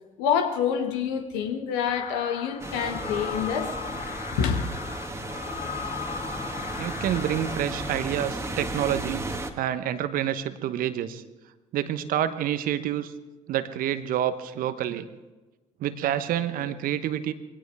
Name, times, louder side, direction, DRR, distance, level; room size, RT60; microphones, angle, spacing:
voice 1, 0.2-3.7 4.3-4.6, left 7 dB, 75° left, 5 dB, 1.7 m, -27 dB
sound 1, 1.9-7.9, left 8 dB, 55° left, 1.2 m, -37 dB
sound 2, 2.6-9.5, right 2 dB, 15° right, 1.9 m, -34 dB
voice 2, 6.8-9.2 9.6-11.2 11.7-13.1 13.5-15.1 15.8-17.3, right 11 dB, 60° right, 12 dB, 1.1 m, -28 dB
22.0 x 17.5 x 3.5 m, 1.2 s
hypercardioid pair, 50°, 16 cm